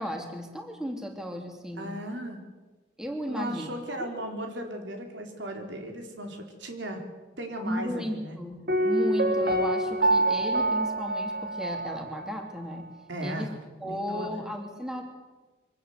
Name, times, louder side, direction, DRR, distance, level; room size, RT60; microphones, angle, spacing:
voice 1, 0.0-2.0 3.0-3.7 4.0-4.1 7.6-12.9 13.2-13.5 13.8-15.0, equal, 5° right, 3 dB, 2.9 m, -35 dB
voice 2, 1.8-2.4 3.3-7.0 7.4-8.4 13.1-13.5 13.8-14.4, right 1 dB, 85° right, 4 dB, 4.1 m, -36 dB
Piano, 8.7-12.5 12.7-12.8, right 1 dB, 55° right, 2.1 m, -26 dB
24.0 x 18.0 x 8.1 m, 1.3 s
head